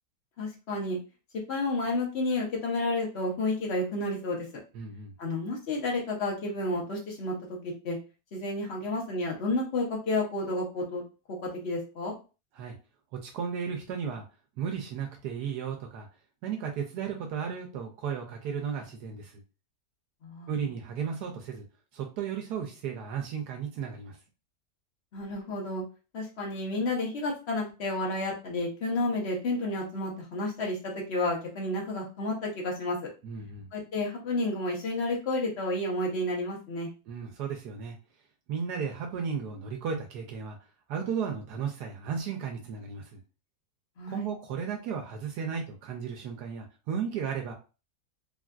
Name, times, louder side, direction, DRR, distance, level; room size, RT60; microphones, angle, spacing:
voice 1, 0.4-1.0 1.5-4.5 5.2-8.0 8.3-11.0 11.4-12.1 20.2-20.5 25.1-25.8 26.1-33.0 33.7-36.9 44.0-44.3, left 2 dB, 45° left, -1 dB, 1.1 m, -31 dB
voice 2, 4.7-5.1 12.5-12.7 13.2-14.2 14.6-16.1 16.4-19.4 20.5-21.6 21.9-24.2 33.2-33.7 37.1-38.0 38.5-40.6 40.9-43.2 44.1-47.5, right 7 dB, 80° right, 2 dB, 1.1 m, -34 dB
3.4 x 2.5 x 2.3 m, 0.32 s
omnidirectional pair, 1.7 m